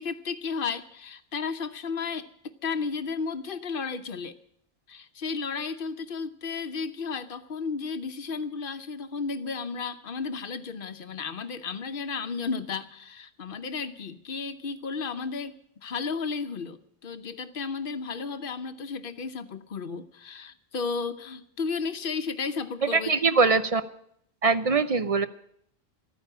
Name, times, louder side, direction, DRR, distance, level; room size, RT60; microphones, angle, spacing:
voice 1, 0.0-4.3 4.9-15.5 15.8-23.1, left 5 dB, 60° left, 10 dB, 1.0 m, -33 dB
voice 2, 22.8-23.8 24.4-25.3, right 4 dB, 40° right, 11 dB, 0.7 m, -22 dB
13.5 x 9.4 x 8.7 m, 0.68 s
omnidirectional pair, 1.0 m